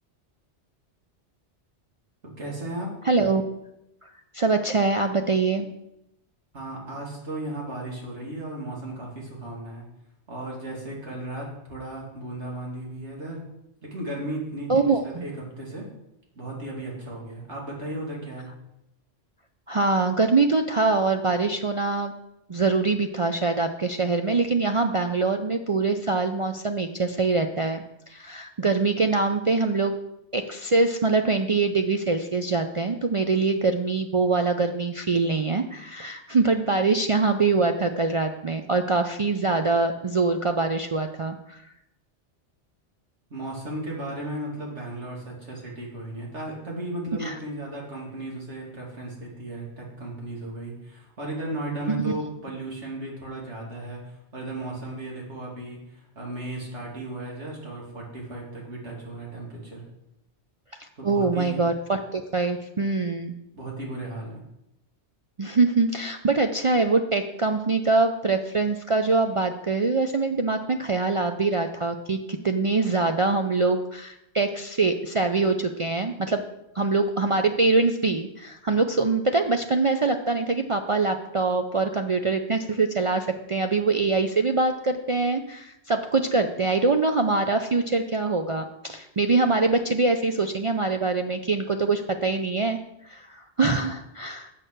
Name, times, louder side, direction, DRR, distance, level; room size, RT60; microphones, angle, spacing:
voice 1, 2.4-2.9 6.5-9.8 10.3-13.4 13.8-15.9 16.4-18.5 43.3-59.8 61.0-61.6 63.5-64.4, right 1 dB, 80° right, -3 dB, 2.9 m, -35 dB
voice 2, 3.1-3.4 4.3-5.7 14.7-15.2 19.7-22.1 22.5-27.8 28.1-30.0 30.3-41.6 47.2-47.4 51.9-52.0 60.8-63.3 65.4-76.4 76.7-92.8 93.1-94.5, right 3 dB, 50° right, 5 dB, 0.4 m, -24 dB
7.5 x 6.5 x 6.5 m, 0.85 s
omnidirectional pair, 1.2 m